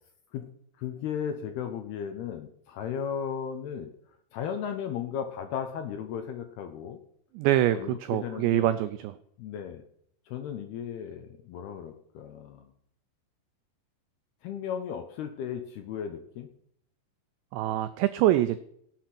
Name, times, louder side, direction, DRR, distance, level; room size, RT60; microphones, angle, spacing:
voice 1, 0.8-3.9 4.3-7.0 7.7-8.7 9.4-9.8 10.3-12.7 14.4-16.5, left 8 dB, 75° left, 7 dB, 2.5 m, -35 dB
voice 2, 7.3-9.2 17.5-18.6, right 13 dB, 85° right, 12 dB, 2.5 m, -25 dB
17.0 x 7.9 x 6.0 m, 0.68 s
omnidirectional pair, 5.7 m